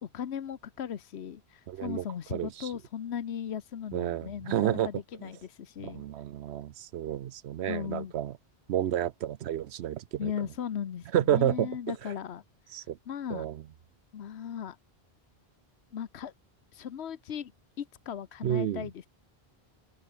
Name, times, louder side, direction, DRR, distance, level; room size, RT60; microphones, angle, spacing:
voice 1, 0.0-4.9 5.2-6.0 7.7-8.1 10.2-12.4 12.7-13.5 14.1-14.8 15.9-16.3 16.7-17.5 17.8-19.1, left 8 dB, 85° left, 1.2 m, -37 dB
voice 2, 1.7-2.0 2.3-2.7 3.9-4.9 5.2-5.3 5.8-8.4 8.7-10.3 11.1-12.0 12.7-13.0 13.3-13.6 18.4-18.9, right 11 dB, 85° right, 0.9 m, -30 dB
open air
omnidirectional pair, 1.1 m